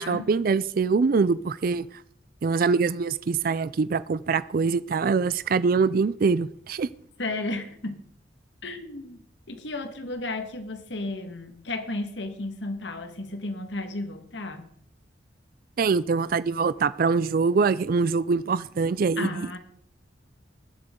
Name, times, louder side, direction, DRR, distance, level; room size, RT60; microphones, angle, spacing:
voice 1, 0.0-1.9 2.4-6.9 15.8-19.3, right 4 dB, 50° right, 16 dB, 0.4 m, -24 dB
voice 2, 7.2-8.1 8.6-14.7 19.2-19.6, left 2 dB, 75° left, 7 dB, 1.6 m, -33 dB
20.0 x 7.9 x 3.7 m, 0.62 s
head